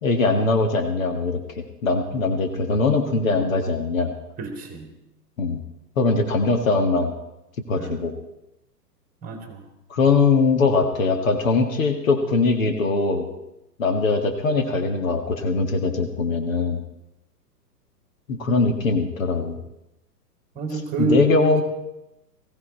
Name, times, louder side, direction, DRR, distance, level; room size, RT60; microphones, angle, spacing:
voice 1, 0.0-4.1 5.4-5.6 6.0-7.1 7.7-8.1 9.9-13.3 13.8-16.8 18.3-19.6 21.0-21.6, left 3 dB, 55° left, 4 dB, 2.0 m, -21 dB
voice 2, 4.4-4.9 7.7-8.0 9.2-9.6 20.5-21.6, right 3 dB, 15° right, 4 dB, 2.5 m, -27 dB
20.0 x 15.5 x 4.3 m, 0.90 s
figure-of-eight pair, 110°, 49 cm